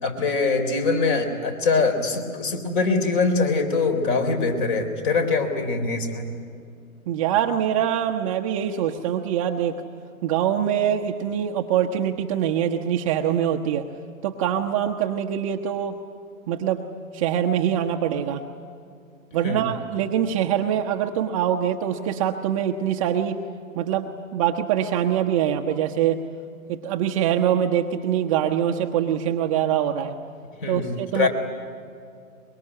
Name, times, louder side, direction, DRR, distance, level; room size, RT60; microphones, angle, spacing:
voice 1, 0.0-6.3 19.4-19.6 30.6-31.3, left 4 dB, 35° left, 7 dB, 3.8 m, -23 dB
voice 2, 7.1-9.8 10.2-13.9 14.2-16.0 16.5-16.8 17.1-18.4 19.3-23.4 23.8-26.2 26.7-30.2 30.7-31.3, right 9 dB, 25° right, 3 dB, 0.9 m, -24 dB
23.5 x 22.0 x 9.9 m, 2.4 s
hypercardioid pair, 145°, 42 cm